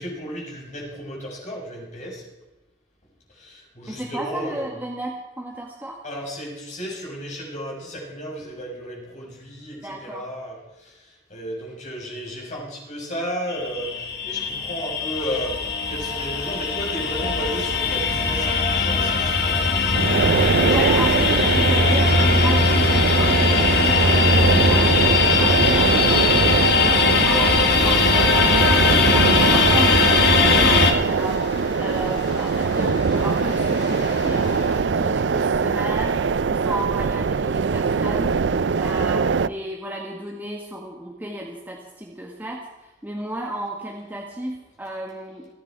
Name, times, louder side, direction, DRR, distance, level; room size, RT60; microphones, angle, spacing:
voice 1, 0.0-2.2 3.3-4.7 6.0-20.9 21.5-21.6 23.9-24.3 26.8-27.1, equal, 40° left, -2 dB, 6.1 m, -34 dB
voice 2, 3.9-6.0 9.8-10.3 20.7-26.2 26.7-36.1 36.5-42.7 43.0-45.5, right 1 dB, 10° right, -1 dB, 1.7 m, -33 dB
sound 1, 13.5-30.9, left 4 dB, 65° left, 2.0 m, -19 dB
sound 2, 20.0-39.5, right 5 dB, 75° right, 0.5 m, -22 dB
sound 3, 29.1-34.8, left 2 dB, 85° left, 4.4 m, -38 dB
28.0 x 9.7 x 4.7 m, 1.1 s
head